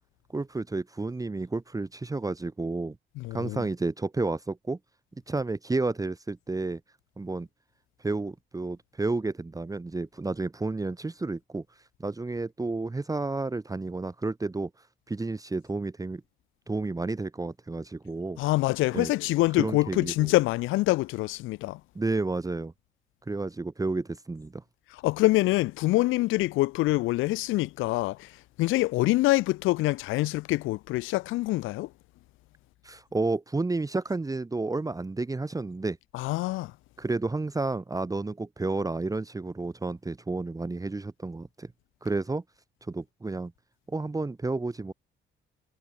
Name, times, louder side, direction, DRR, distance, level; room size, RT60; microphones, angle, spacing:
voice 1, 0.3-3.0 3.3-4.8 5.3-6.8 7.2-7.5 8.0-11.6 12.0-14.7 15.1-16.2 16.7-18.4 18.9-19.1 19.6-20.3 21.9-22.7 23.3-24.6 32.8-36.0 37.0-41.7 42.0-42.4 42.9-43.5 43.9-44.9, right 3 dB, 15° right, 1.4 m, -31 dB
voice 2, 3.2-3.6 18.4-21.8 25.0-28.3 28.6-31.9 36.1-36.7, left 19 dB, 90° left, 0.5 m, -25 dB
cardioid pair, 90°, 20 cm